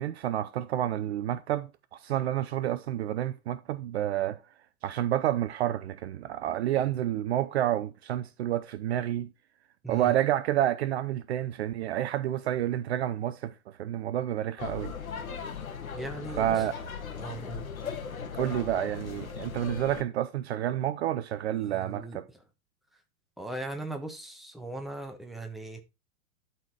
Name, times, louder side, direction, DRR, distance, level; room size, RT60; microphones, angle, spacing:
voice 1, 0.0-4.4 4.8-9.3 9.9-14.9 16.4-16.7 18.3-22.2, right 12 dB, 50° right, 0.6 m, -29 dB
sound 1, 14.6-20.0, left 6 dB, 70° left, 1.5 m, -38 dB
voice 2, 15.9-16.7 17.2-17.7 21.5-22.4 23.4-25.8, right 2 dB, ahead, 1.2 m, -39 dB
12.0 x 4.2 x 4.6 m
figure-of-eight pair, 100°, 43 cm